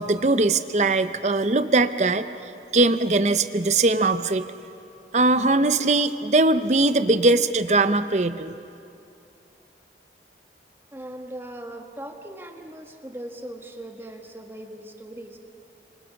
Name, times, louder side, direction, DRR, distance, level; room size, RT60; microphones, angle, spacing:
voice 1, 0.0-2.3 2.7-4.4 5.1-8.5, right 2 dB, 40° right, 11 dB, 0.7 m, -20 dB
voice 2, 10.9-15.4, right 1 dB, 15° right, 4 dB, 1.5 m, -39 dB
26.0 x 26.0 x 5.8 m, 2.7 s
head